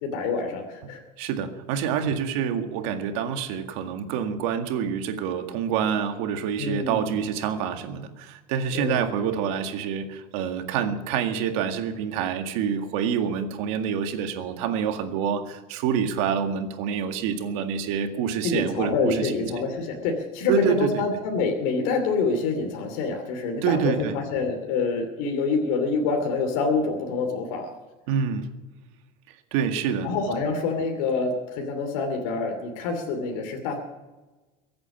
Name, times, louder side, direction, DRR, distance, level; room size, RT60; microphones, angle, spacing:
voice 1, 0.0-1.0 6.6-7.1 8.7-9.1 18.4-27.7 30.0-33.8, left 4 dB, 70° left, 3 dB, 2.8 m, -26 dB
voice 2, 1.2-19.5 20.5-21.0 23.6-24.1 28.1-28.5 29.5-30.1, right 7 dB, 70° right, 6 dB, 1.9 m, -27 dB
23.0 x 8.8 x 6.0 m, 1.2 s
cardioid pair, 170°, 18 cm